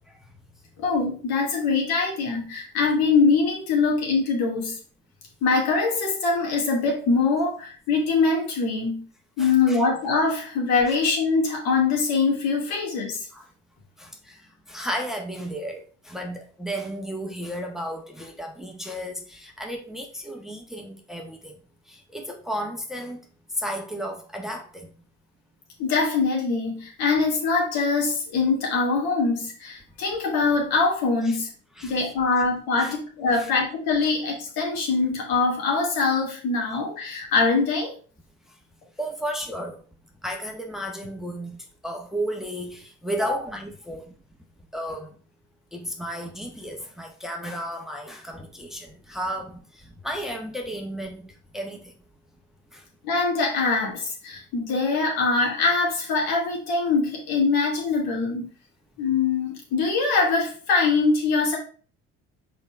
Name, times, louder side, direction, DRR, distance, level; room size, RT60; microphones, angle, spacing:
voice 1, 0.8-4.8 5.4-9.0 9.4-13.2 25.8-31.5 31.8-37.9 53.0-58.5 59.0-61.6, left 4 dB, 65° left, 2.4 m, -23 dB
voice 2, 9.4-9.8 10.9-11.0 13.3-13.5 14.0-21.5 21.9-23.2 23.5-24.9 31.2-31.4 31.8-32.0 32.8-32.9 33.4-33.5 39.0-39.8 40.2-44.0 44.7-45.1 45.7-51.9 52.7-52.8, equal, ahead, 1.3 m, -33 dB
5.3 x 4.2 x 4.6 m
hypercardioid pair, 60°, 39 cm